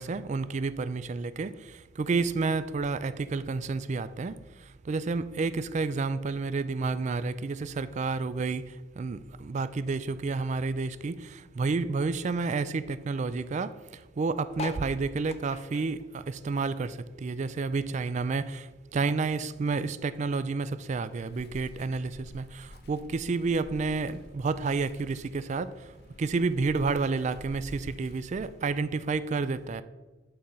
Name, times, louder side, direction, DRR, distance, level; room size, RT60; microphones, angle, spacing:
voice 1, 0.0-1.5 2.0-4.3 4.9-8.6 9.0-13.7 14.2-25.7 26.2-29.8, right 4 dB, 35° right, 14 dB, 0.3 m, -30 dB
sound 1, 14.5-17.3 17.6-19.1 19.6-19.7 19.9-20.0 20.2-20.6 21.4-21.5, left 4 dB, 30° left, 0.4 m, -43 dB
Wind, 21.1-28.9, left 1 dB, 55° left, 0.8 m, -49 dB
8.8 x 4.4 x 5.4 m, 1.2 s
head